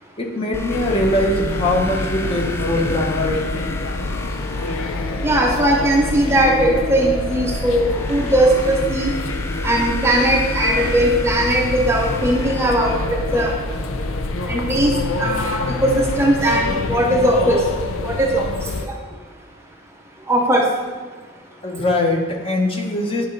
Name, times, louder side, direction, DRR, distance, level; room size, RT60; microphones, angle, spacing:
voice 1, 0.2-3.5 21.6-23.3, left 1 dB, 25° left, 1 dB, 0.9 m, -21 dB
sound 1, 0.5-14.2, left 2 dB, 10° left, 0.3 m, -30 dB
sound 2, 0.7-18.9, left 3 dB, 80° left, 0.5 m, -27 dB
voice 2, 5.2-9.1 9.6-13.5 14.5-14.9 15.2-17.6 18.0-18.5 18.8-18.9 20.3-20.7, right 1 dB, 15° right, 0 dB, 0.7 m, -18 dB
11.0 x 5.2 x 3.2 m, 1.4 s
head